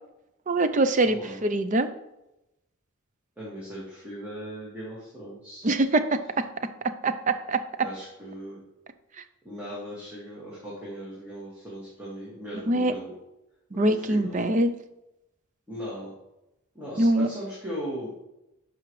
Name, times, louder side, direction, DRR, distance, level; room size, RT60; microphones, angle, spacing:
voice 1, 0.5-1.9 5.6-6.0 7.0-7.6 12.7-12.9 13.7-14.7 17.0-17.3, right 2 dB, 35° right, 10 dB, 0.5 m, -23 dB
voice 2, 1.0-1.4 3.4-5.7 7.8-8.6 9.4-13.1 13.8-14.5 15.7-16.1 16.8-18.1, equal, 5° right, -8 dB, 1.8 m, -38 dB
11.5 x 5.0 x 3.2 m, 0.91 s
head